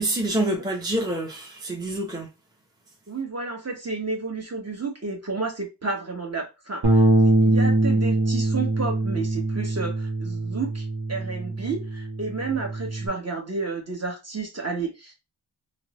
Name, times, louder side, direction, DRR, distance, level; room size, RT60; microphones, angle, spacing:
voice 1, 0.0-2.3, right 1 dB, 10° right, 0.7 m, -27 dB
voice 2, 3.1-15.1, right 4 dB, 35° right, 1.0 m, -31 dB
Bass guitar, 6.8-13.1, right 2 dB, 65° right, 1.0 m, -23 dB
3.3 x 2.0 x 3.0 m
wide cardioid pair, 80°, 43 cm